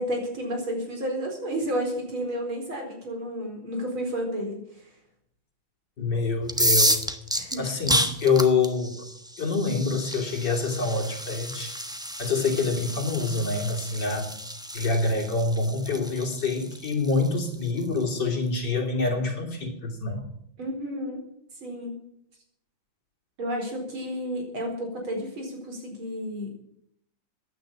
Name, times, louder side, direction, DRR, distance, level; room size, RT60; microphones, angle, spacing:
voice 1, 0.0-4.8 7.4-7.7 20.6-21.2 21.6-22.0 23.4-26.5, equal, 80° right, 2 dB, 5.2 m, -31 dB
voice 2, 6.0-7.1 7.6-9.0 9.4-11.7 12.2-14.3 14.7-20.2, left 4 dB, 55° left, 1 dB, 3.6 m, -26 dB
sound 1, 6.4-18.2, equal, 5° right, 0.6 m, -30 dB
15.5 x 10.5 x 7.3 m, 0.71 s
omnidirectional pair, 2.3 m